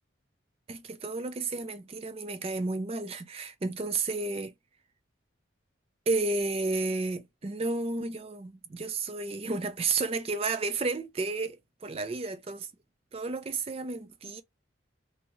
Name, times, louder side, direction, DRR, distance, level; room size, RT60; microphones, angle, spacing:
voice 1, 0.7-4.5 6.1-12.7 13.1-14.4, right 3 dB, 30° right, 0.4 m, -32 dB
2.8 x 2.3 x 2.9 m
head